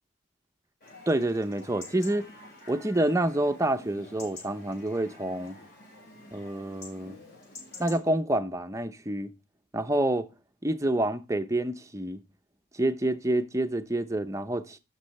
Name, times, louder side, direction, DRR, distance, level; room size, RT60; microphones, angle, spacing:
Chatter / Livestock farm animals working animals / Chirp tweet, 0.8-8.0, left 2 dB, 45° left, 5.2 m, -48 dB
voice 1, 1.1-2.3 2.7-5.6 6.3-7.2 7.8-9.3 9.7-10.3 10.6-12.2 12.7-14.8, right 1 dB, 15° right, 0.6 m, -28 dB
11.5 x 6.7 x 3.1 m
head